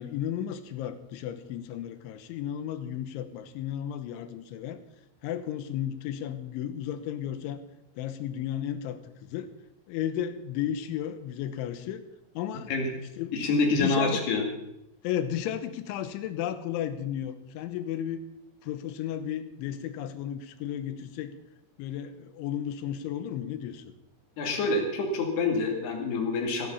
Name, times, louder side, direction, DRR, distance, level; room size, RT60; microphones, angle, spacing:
voice 1, 0.0-4.8 5.2-7.6 8.0-9.5 9.9-12.0 12.3-12.7 13.2-13.5 13.8-14.2 15.0-18.2 18.6-21.3 21.8-23.9, left 10 dB, 75° left, 11 dB, 3.2 m, -34 dB
voice 2, 13.3-14.4 24.4-26.7, left 3 dB, 60° left, 2 dB, 4.0 m, -26 dB
17.5 x 13.5 x 5.6 m, 0.87 s
omnidirectional pair, 6.0 m